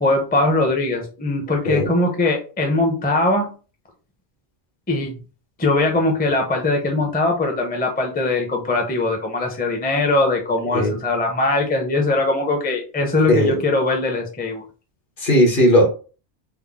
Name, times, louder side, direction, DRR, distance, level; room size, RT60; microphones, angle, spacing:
voice 1, 0.0-3.5 4.9-5.2 5.6-14.6, left 2 dB, 10° left, 2 dB, 0.5 m, -21 dB
voice 2, 15.2-15.9, equal, 55° left, 1 dB, 1.1 m, -16 dB
3.6 x 2.1 x 3.4 m, 0.36 s
omnidirectional pair, 1.1 m